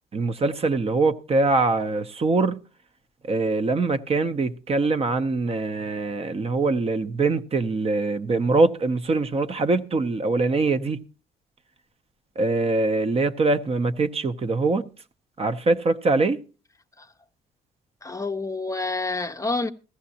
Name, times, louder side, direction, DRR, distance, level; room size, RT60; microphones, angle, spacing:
voice 1, 0.1-2.6 3.2-11.0 12.4-14.9 15.4-16.4, right 3 dB, 35° right, 0.7 m, -23 dB
voice 2, 18.0-19.7, left 3 dB, 20° left, 0.6 m, -28 dB
16.0 x 14.0 x 2.7 m
cardioid pair, 80°, 17 cm